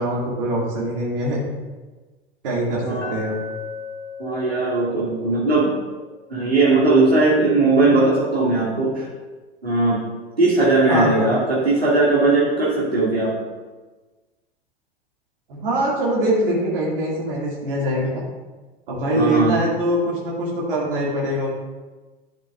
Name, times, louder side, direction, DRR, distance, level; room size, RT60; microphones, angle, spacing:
voice 1, 0.0-1.5 2.4-3.4 10.9-11.3 15.5-18.2 18.9-21.5, right 1 dB, 60° right, -4 dB, 2.0 m, -23 dB
voice 2, 2.8-3.2 4.2-5.7 6.3-9.0 9.6-10.0 10.4-13.3 19.2-19.5, right 2 dB, 85° right, -7 dB, 2.1 m, -18 dB
Glass, 3.0-7.1, left 5 dB, 10° left, 1.8 m, -38 dB
11.0 x 7.4 x 2.3 m, 1.3 s
figure-of-eight pair, 90°, 30 cm